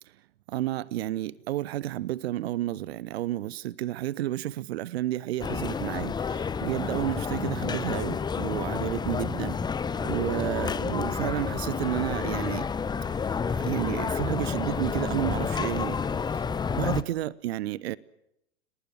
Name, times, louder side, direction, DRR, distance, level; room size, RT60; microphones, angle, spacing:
voice 1, 0.5-9.7 10.0-12.7 13.5-16.0 16.3-16.4 16.7-18.0, right 14 dB, 55° right, 0.9 m, -31 dB
sound 1, 5.4-17.0, left 6 dB, 10° left, 0.9 m, -30 dB
29.5 x 19.0 x 7.8 m
figure-of-eight pair, 95°, 37 cm